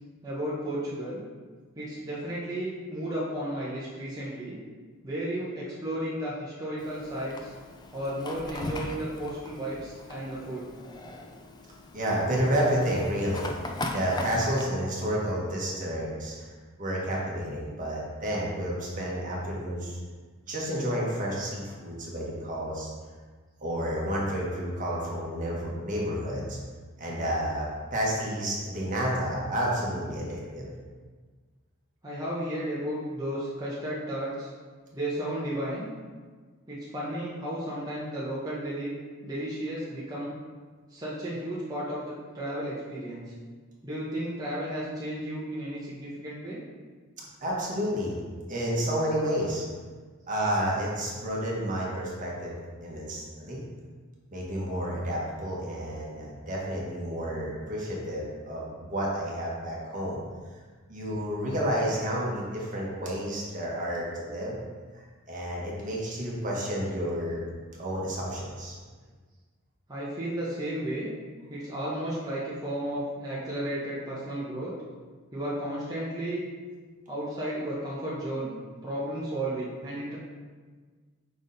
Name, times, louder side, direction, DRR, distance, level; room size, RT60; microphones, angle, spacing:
voice 1, 0.2-1.2 1.8-4.6 5.0-7.5 7.9-10.7 32.0-34.5 34.9-35.9 36.7-38.9 39.2-40.3 40.9-43.3 43.8-46.6 69.9-71.1 71.5-74.7 75.3-76.4 77.1-78.5 78.8-80.2, right 1 dB, 20° right, -8 dB, 1.1 m, -33 dB
Fire, 6.8-14.6, left 2 dB, 20° left, 0.4 m, -39 dB
voice 2, 11.9-16.5 16.8-20.0 20.5-22.9 23.6-26.6 27.0-30.7 47.2-48.2 48.5-49.6 50.3-53.6 54.3-60.2 60.9-64.6 64.9-67.4 67.8-68.8, equal, 40° right, -3 dB, 1.3 m, -30 dB
5.3 x 4.8 x 4.0 m, 1.5 s
head